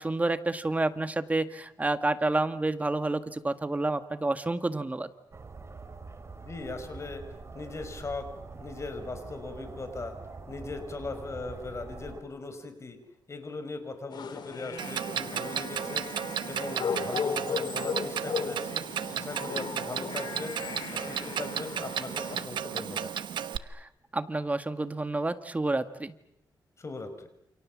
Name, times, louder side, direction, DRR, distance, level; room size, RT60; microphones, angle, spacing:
voice 1, 0.0-5.1 23.7-26.1, right 2 dB, 20° right, 10 dB, 1.8 m, -29 dB
sound 1, 5.3-12.2, right 4 dB, 35° right, 3.7 m, -44 dB
voice 2, 6.4-7.2 7.5-8.3 8.5-10.1 10.5-13.0 13.3-16.0 16.4-18.8 19.1-20.6 20.9-23.1 26.8-27.3, left 3 dB, 40° left, 8 dB, 5.5 m, -39 dB
sound 2, 14.1-22.4, left 6 dB, 70° left, 3.1 m, -37 dB
Clock, 14.8-23.6, right 9 dB, 85° right, 1.2 m, -34 dB
29.0 x 27.5 x 7.5 m, 0.75 s
cardioid pair, 105°, 8 cm